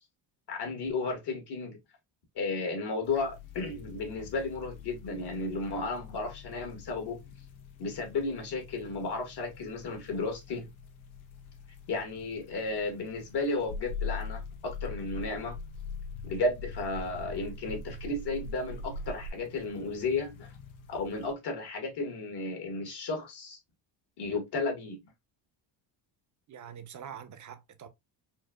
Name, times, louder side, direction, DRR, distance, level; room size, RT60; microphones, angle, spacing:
voice 1, 0.5-1.8 2.3-7.2 7.8-10.7 11.9-15.6 16.2-20.5 20.9-23.6 24.2-25.0, left 3 dB, 55° left, 1.6 m, -33 dB
sound 1, 3.0-21.3, left 7 dB, 85° left, 1.0 m, -50 dB
sound 2, 13.7-19.3, left 3 dB, 30° left, 0.7 m, -39 dB
voice 2, 26.5-27.9, right 8 dB, 40° right, 0.7 m, -45 dB
4.5 x 2.3 x 2.3 m
cardioid pair, 95°, 47 cm